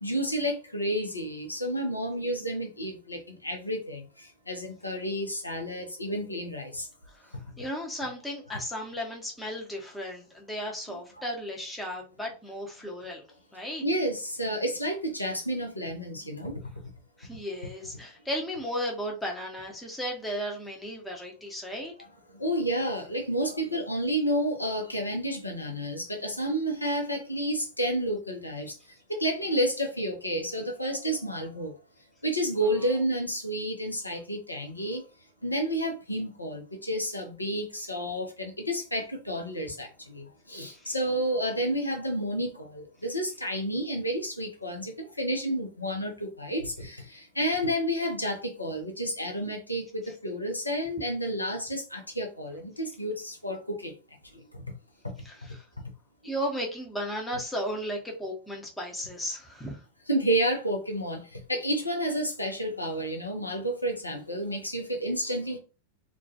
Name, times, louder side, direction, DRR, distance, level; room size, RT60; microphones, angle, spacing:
voice 1, 0.0-6.9 13.8-16.5 22.3-28.7 29.1-31.7 32.2-35.0 35.4-53.9 54.3-54.6 55.0-55.1 60.1-65.6, equal, 85° left, 2 dB, 0.6 m, -30 dB
voice 2, 7.1-13.2 13.5-13.8 17.2-21.9 40.6-40.9 55.2-55.7 56.2-59.8, equal, 5° left, -1 dB, 0.8 m, -35 dB
2.2 x 2.2 x 2.7 m, 0.33 s
figure-of-eight pair, 90°, 0 cm